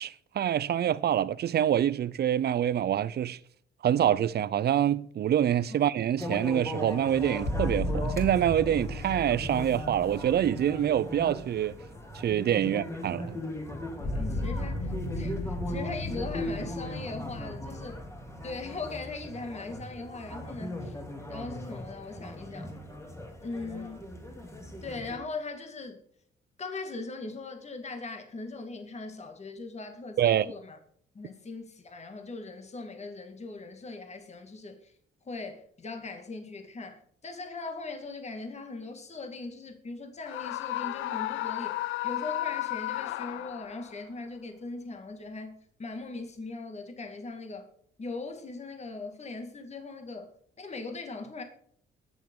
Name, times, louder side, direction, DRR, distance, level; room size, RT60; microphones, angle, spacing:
voice 1, 0.0-3.4 3.8-11.8 12.1-13.3 30.2-30.5, right 10 dB, 55° right, 0.6 m, -26 dB
sound 1, 6.2-25.2, left 1 dB, 15° left, 3.0 m, -39 dB
sound 2, 7.4-12.4 14.0-19.7, left 1 dB, 50° left, 5.2 m, -35 dB
voice 2, 14.0-18.0 18.4-21.0 21.3-22.7 23.4-24.1 24.8-26.0 26.6-30.8 31.1-34.9 35.3-41.8 42.0-47.7 48.0-50.3 50.6-51.4, left 3 dB, 35° left, 2.1 m, -40 dB
Screaming, 40.2-43.9, left 15 dB, 90° left, 0.5 m, -33 dB
20.5 x 7.2 x 3.8 m
cardioid pair, 90°, 20 cm